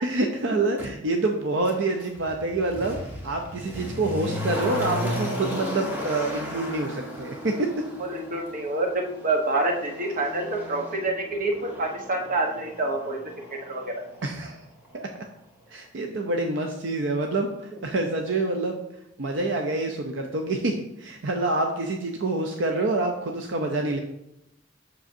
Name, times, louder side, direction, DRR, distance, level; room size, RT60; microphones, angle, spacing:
voice 1, 0.0-3.0 3.2-7.7 14.2-14.6 14.9-15.1 15.7-18.8 19.2-24.0, right 2 dB, 70° right, 4 dB, 0.6 m, -27 dB
Motor vehicle (road), 0.8-0.9 1.6-14.6 14.8-14.9, equal, 10° right, 1.5 m, -35 dB
voice 2, 8.0-13.2 13.6-13.9, right 2 dB, 45° right, 2 dB, 1.1 m, -27 dB
7.4 x 6.2 x 2.7 m, 0.82 s
head